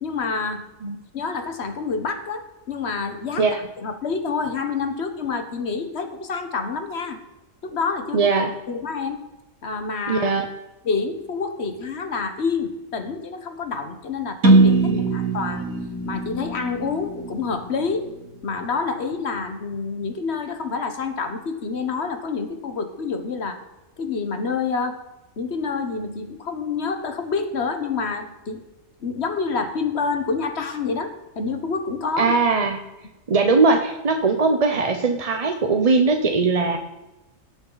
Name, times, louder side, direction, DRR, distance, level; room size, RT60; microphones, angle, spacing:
voice 1, 0.0-0.7 1.1-7.2 7.6-8.3 8.7-9.2 9.6-10.3 10.8-15.7 16.0-18.1 18.4-23.6 24.0-25.0 25.4-28.6 29.0-32.4, left 4 dB, 55° left, 7 dB, 1.4 m, -28 dB
voice 2, 8.1-8.5 10.1-10.5 14.9-15.1 32.2-32.8 33.3-36.8, right 4 dB, 35° right, 5 dB, 0.7 m, -20 dB
sound 1, 14.4-18.3, right 2 dB, 85° right, 2.0 m, -21 dB
18.0 x 7.1 x 4.0 m, 1.0 s
omnidirectional pair, 1.4 m